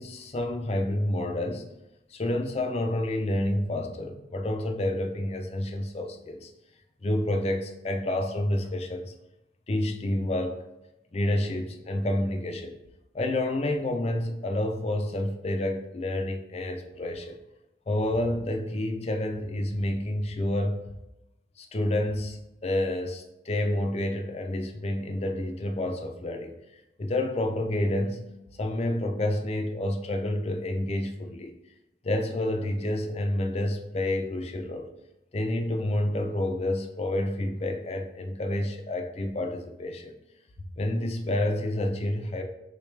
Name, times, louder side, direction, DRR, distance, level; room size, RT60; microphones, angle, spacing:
voice 1, 0.0-1.7 2.1-6.5 7.0-9.1 9.7-10.6 11.1-12.8 13.1-17.4 17.9-20.8 21.6-28.2 28.6-31.5 32.0-34.9 35.3-40.2 40.8-42.4, left 1 dB, 35° left, 4 dB, 0.5 m, -29 dB
6.5 x 2.3 x 3.2 m, 0.92 s
head